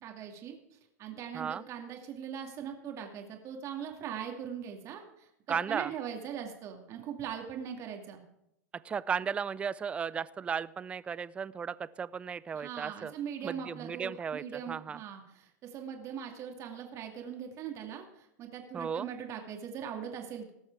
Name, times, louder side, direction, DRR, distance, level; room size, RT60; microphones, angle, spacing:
voice 1, 0.0-0.6 1.0-8.2 12.5-20.5, right 8 dB, 35° right, 3 dB, 2.4 m, -41 dB
voice 2, 5.5-5.9 8.8-13.1 13.4-15.0 18.7-19.1, right 6 dB, 15° right, 19 dB, 0.3 m, -35 dB
18.5 x 6.4 x 4.7 m, 0.81 s
hypercardioid pair, 125°, 9 cm